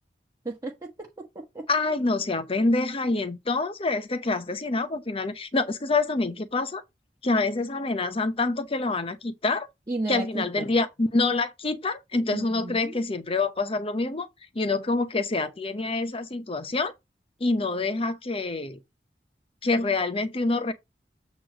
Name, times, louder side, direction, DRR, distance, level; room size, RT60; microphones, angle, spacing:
voice 1, 0.4-1.6 9.9-10.7 12.3-13.0, right 2 dB, 20° right, 1.3 m, -34 dB
voice 2, 1.7-6.8 7.2-9.7 10.1-14.3 14.5-16.9 17.4-18.8 19.6-20.7, left 3 dB, 30° left, 0.8 m, -26 dB
8.3 x 3.2 x 6.0 m
head